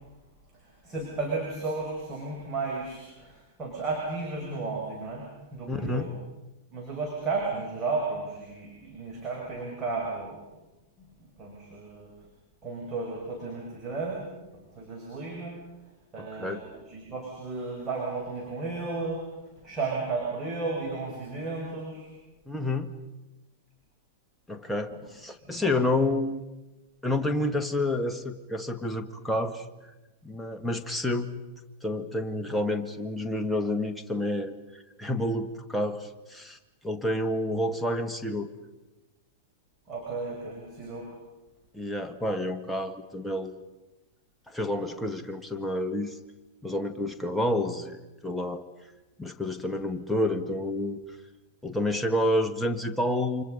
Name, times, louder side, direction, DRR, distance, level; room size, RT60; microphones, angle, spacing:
voice 1, 0.8-5.3 5.5-6.1 6.7-10.4 11.4-12.1 12.6-15.6 16.1-16.6 16.9-19.2 19.6-22.1 25.4-25.7 39.9-41.1, right 3 dB, 20° right, -2 dB, 6.3 m, -33 dB
voice 2, 5.7-6.1 16.2-16.6 22.5-22.9 24.5-26.4 27.0-29.9 30.2-31.3 31.8-36.6 36.8-38.5 41.7-43.6 44.5-46.2 46.6-48.6 49.2-51.0 51.6-53.4, left 1 dB, 5° left, 5 dB, 1.8 m, -29 dB
29.0 x 25.5 x 5.4 m, 1.1 s
figure-of-eight pair, 95°, 0 cm